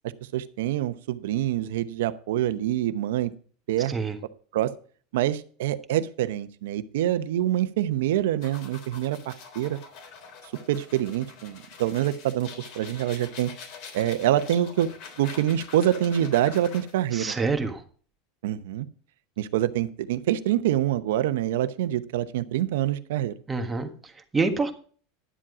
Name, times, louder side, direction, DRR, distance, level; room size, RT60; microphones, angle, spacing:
voice 1, 0.3-3.3 3.7-3.9 4.5-4.7 5.1-9.8 10.7-12.5 12.7-13.5 13.9-14.9 15.2-17.3 18.4-18.9 19.4-23.3, right 12 dB, 80° right, 12 dB, 0.9 m, -26 dB
sound 1, 8.4-17.1, left 6 dB, 60° left, 3.6 m, -45 dB
voice 2, 17.1-17.8 23.5-24.7, right 4 dB, 15° right, 5 dB, 1.5 m, -27 dB
11.5 x 7.6 x 5.0 m, 0.43 s
supercardioid pair, 130°, 0 cm